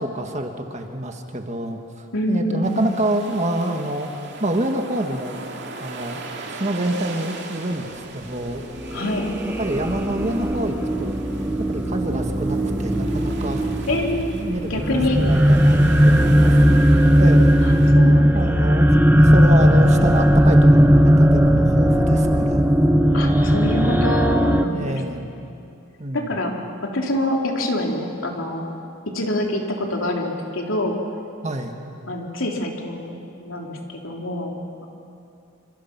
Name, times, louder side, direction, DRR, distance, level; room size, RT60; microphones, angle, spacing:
voice 1, 0.0-4.1 4.4-5.4 5.8-6.2 6.5-8.6 9.6-11.1 11.6-13.6 14.3-15.8 16.0-16.9 17.2-17.7 18.3-22.6 23.7-24.0 24.5-25.3 26.0-26.3 31.4-31.8, right 1 dB, 30° right, 4 dB, 1.7 m, -27 dB
voice 2, 2.1-2.9 8.9-9.3 13.9-14.4 14.6-15.2 17.6-18.6 23.1-25.0 25.4-25.6 26.1-26.5 26.8-28.7 29.0-31.0 32.1-34.9, left 1 dB, 70° left, 1 dB, 3.2 m, -26 dB
sound 1, 2.6-17.9, right 3 dB, 50° right, 2.5 m, -39 dB
sound 2, 8.4-24.6, equal, 10° right, 0.8 m, -17 dB
26.5 x 26.0 x 6.0 m, 2.6 s
head